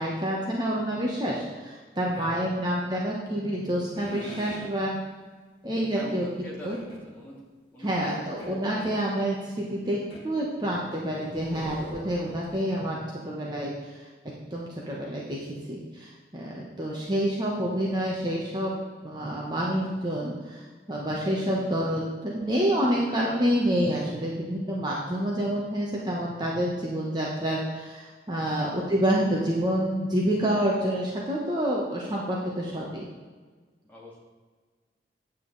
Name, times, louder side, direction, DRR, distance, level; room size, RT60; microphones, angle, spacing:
voice 1, 0.0-5.0 5.6-6.3 6.6-6.8 7.8-10.0 10.2-13.0 13.2-14.0 14.5-15.4 15.7-18.7 19.0-20.6 20.9-33.1, equal, 25° right, -4 dB, 1.2 m, -28 dB
voice 2, 2.1-2.7 5.9-7.4 7.7-8.8 28.5-28.9 33.9-34.2, equal, 10° left, -6 dB, 2.5 m, -44 dB
sound 1, 3.9-4.7 6.7-7.0 8.4-9.0 10.1-10.3 10.9-12.6, equal, 25° left, 2.9 m, -42 dB
9.3 x 8.3 x 4.0 m, 1.4 s
head